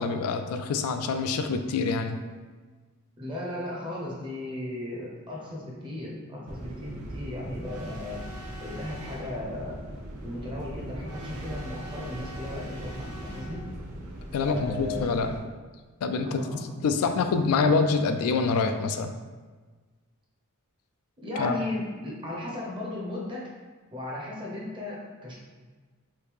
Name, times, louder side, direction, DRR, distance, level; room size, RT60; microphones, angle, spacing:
voice 1, 0.0-2.2 14.3-15.4 16.0-16.4 16.8-19.1 21.4-21.6, left 4 dB, 75° left, 7 dB, 0.3 m, -26 dB
voice 2, 3.2-8.2 8.6-9.8 10.2-13.6 14.4-15.2 16.2-16.8 21.2-23.5 23.9-25.4, left 1 dB, 20° right, -3 dB, 0.6 m, -36 dB
sound 1, 6.4-15.4, right 1 dB, 80° right, 0.6 m, -39 dB
3.1 x 2.7 x 3.4 m, 1.4 s
head